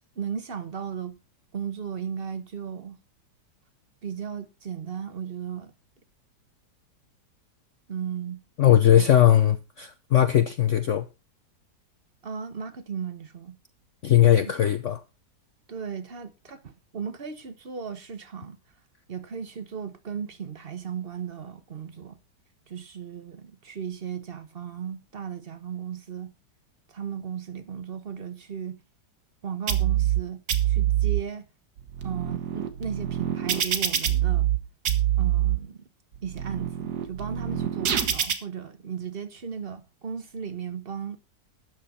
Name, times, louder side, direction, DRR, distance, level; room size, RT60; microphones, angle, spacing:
voice 1, 0.2-1.2 1.5-3.0 4.0-5.7 7.9-8.4 8.9-9.1 12.2-13.6 14.4-14.5 15.7-18.6 19.1-22.2 22.7-26.3 26.9-28.8 29.4-31.4 32.0-34.5 35.2-35.8 36.2-41.2, right 7 dB, 40° right, 1.1 m, -36 dB
voice 2, 8.6-11.1 14.0-15.0, left 11 dB, 60° left, 0.8 m, -19 dB
sound 1, 29.7-30.2 30.5-31.2 31.8-34.6 34.9-35.6 36.1-38.3, right 11 dB, 65° right, 1.8 m, -25 dB
12.5 x 9.2 x 4.3 m
omnidirectional pair, 1.9 m